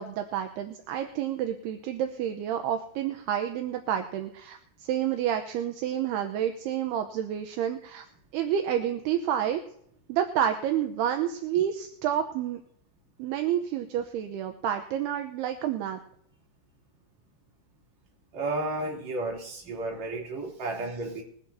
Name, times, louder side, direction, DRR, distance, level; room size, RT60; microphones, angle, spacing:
voice 1, 0.0-8.1 8.3-9.6 10.1-12.6 13.2-16.0, right 10 dB, 75° right, 5 dB, 2.8 m, -29 dB
voice 2, 18.3-21.2, right 2 dB, 45° right, -1 dB, 4.2 m, -32 dB
21.5 x 11.5 x 2.7 m, 0.67 s
omnidirectional pair, 4.9 m